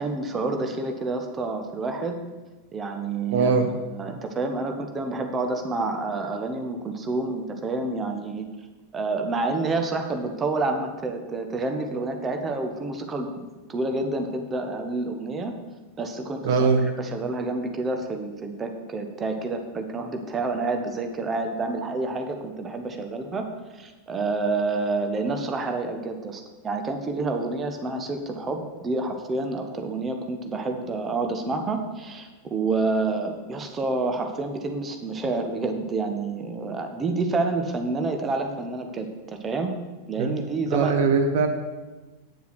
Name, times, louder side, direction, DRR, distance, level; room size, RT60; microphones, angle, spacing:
voice 1, 0.0-2.2 2.7-3.5 3.8-8.5 8.9-13.3 13.7-15.5 16.0-16.7 17.0-23.5 23.7-39.7 40.1-40.9, right 3 dB, 20° right, 5 dB, 1.2 m, -28 dB
voice 2, 3.3-3.7 16.4-16.8 40.2-40.3 40.7-41.5, right 5 dB, 50° right, 6 dB, 1.0 m, -21 dB
9.3 x 7.2 x 6.3 m, 1.2 s
figure-of-eight pair, 90°, 0 cm